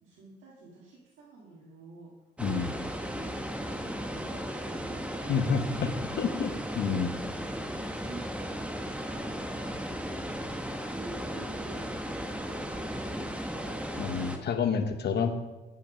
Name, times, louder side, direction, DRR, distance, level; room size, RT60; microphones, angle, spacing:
voice 1, 0.0-2.1 2.6-6.3 7.7-9.8 10.4-13.8 15.2-15.3, right 3 dB, 85° right, -5 dB, 1.7 m, -50 dB
voice 2, 2.4-2.7 5.3-5.9 6.2-7.1 14.0-15.3, left 6 dB, 60° left, 7 dB, 1.0 m, -29 dB
sound 1, 2.4-14.4, equal, 5° right, 0.9 m, -36 dB
8.9 x 5.7 x 5.1 m, 1.1 s
cardioid pair, 90°, 20 cm